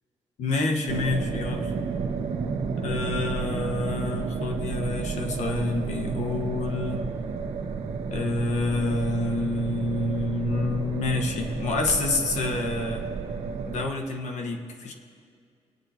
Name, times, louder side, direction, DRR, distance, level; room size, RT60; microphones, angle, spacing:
voice 1, 0.4-1.7 2.8-7.1 8.1-13.1 13.7-14.9, left 2 dB, 85° left, 3 dB, 1.3 m, -28 dB
sound 1, 0.9-13.8, right 5 dB, 80° right, 1.0 m, -31 dB
27.0 x 9.2 x 2.9 m, 2.2 s
cardioid pair, 95°, 12 cm